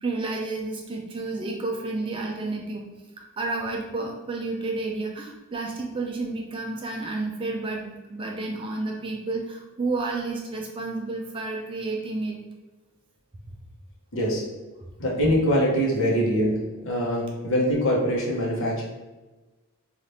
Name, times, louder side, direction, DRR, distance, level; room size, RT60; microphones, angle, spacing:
voice 1, 0.0-2.8 3.2-12.4, right 3 dB, 25° right, 0 dB, 0.3 m, -31 dB
voice 2, 15.0-16.6 16.8-18.8, equal, 60° left, -3 dB, 0.8 m, -23 dB
2.7 x 2.4 x 3.3 m, 1.2 s
head